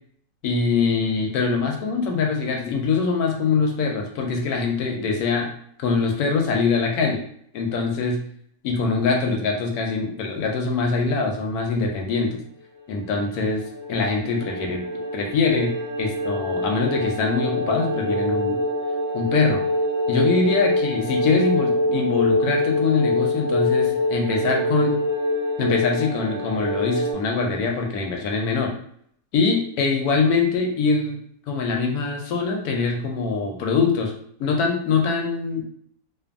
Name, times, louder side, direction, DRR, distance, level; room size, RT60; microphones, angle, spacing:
voice 1, 0.4-5.5 5.8-7.2 7.5-8.2 8.6-12.4 12.9-13.6 13.9-14.9 15.1-18.6 19.1-19.6 20.1-25.0 25.6-28.7 29.3-31.2 31.5-34.1 34.4-35.6, left 4 dB, 85° left, 1 dB, 1.1 m, -23 dB
sound 1, 13.0-27.1, left 1 dB, 40° right, 0.7 m, -25 dB
2.5 x 2.5 x 2.5 m, 0.67 s
omnidirectional pair, 1.6 m